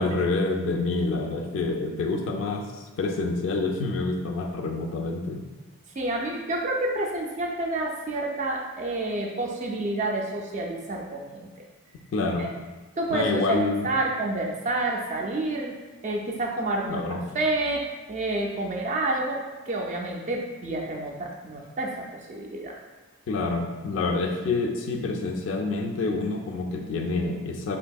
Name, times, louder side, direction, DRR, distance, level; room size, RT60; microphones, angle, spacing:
voice 1, 0.0-5.4 12.1-12.5 13.1-13.9 16.9-17.2 23.3-27.8, left 3 dB, 60° left, 3 dB, 0.3 m, -27 dB
voice 2, 6.0-11.5 12.2-12.5 13.0-15.7 16.0-17.0 17.3-22.8, right 2 dB, 35° right, 0 dB, 0.3 m, -29 dB
3.4 x 2.6 x 2.3 m, 1.2 s
head